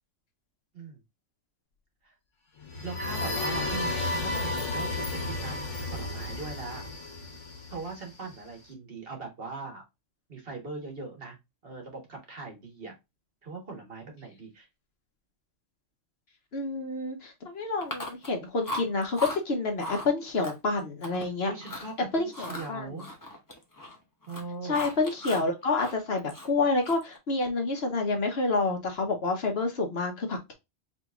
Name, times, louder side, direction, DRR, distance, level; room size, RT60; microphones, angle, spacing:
sound 1, 2.6-8.4, left 2 dB, 75° left, 1.5 m, -33 dB
voice 1, 2.8-6.9 7.7-9.8 10.3-11.4 11.6-12.9 13.4-14.7 21.5-23.1 24.3-24.8, right 4 dB, 50° right, 2 dB, 1.6 m, -40 dB
voice 2, 16.5-21.5 22.1-22.9 24.6-30.5, left 3 dB, 55° left, 3 dB, 1.2 m, -28 dB
Chewing mastication, 17.8-18.4 18.6-19.4 19.8-20.1 20.4-21.3 21.6-21.9 22.3-24.0 24.2-25.5 25.8-27.2, left 1 dB, 20° left, 0.7 m, -37 dB
5.0 x 3.0 x 2.4 m, 0.22 s
omnidirectional pair, 1.3 m